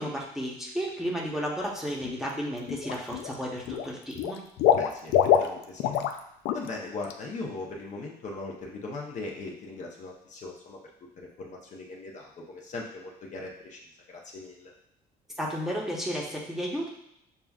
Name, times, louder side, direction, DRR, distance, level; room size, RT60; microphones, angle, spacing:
voice 1, 0.0-4.4 15.4-16.9, equal, ahead, -4 dB, 0.9 m, -33 dB
Water / Liquid, 2.0-2.3 2.7-3.4 3.6-6.2 6.4-6.7 7.0-7.1, left 9 dB, 85° left, 0.4 m, -25 dB
voice 2, 4.7-5.1 5.4-5.9 6.5-10.8 11.2-13.8 14.1-14.7, left 3 dB, 45° left, -1 dB, 0.8 m, -39 dB
6.7 x 2.3 x 2.3 m, 0.75 s
cardioid pair, 110°, 17 cm